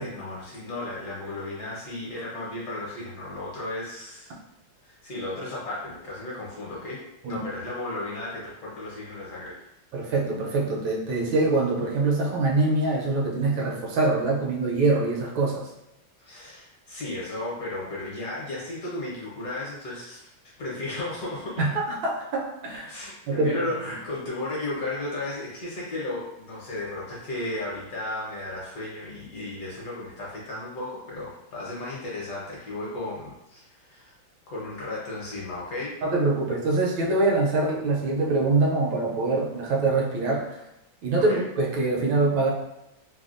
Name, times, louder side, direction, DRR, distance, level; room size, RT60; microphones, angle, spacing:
voice 1, 0.0-4.3 4.8-7.0 7.3-9.6 16.2-20.3 20.6-21.6 22.9-34.1 34.5-36.0 41.2-41.4, left 2 dB, 60° left, -6 dB, 1.2 m, -34 dB
voice 2, 9.9-15.7 21.6-22.9 23.3-23.5 36.0-40.6 41.0-42.5, right 3 dB, 75° right, -1 dB, 1.3 m, -24 dB
3.3 x 2.2 x 2.4 m, 0.89 s
omnidirectional pair, 2.2 m